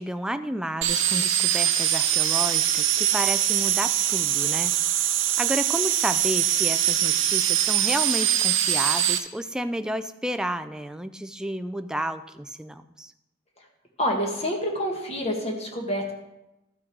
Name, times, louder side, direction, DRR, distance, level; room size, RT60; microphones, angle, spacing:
voice 1, 0.0-13.1, right 1 dB, 5° right, 10 dB, 0.4 m, -31 dB
sound 1, 0.8-9.2, right 11 dB, 70° right, 0.8 m, -23 dB
voice 2, 14.0-16.1, equal, 30° left, 1 dB, 1.7 m, -27 dB
14.0 x 6.2 x 4.6 m, 0.94 s
head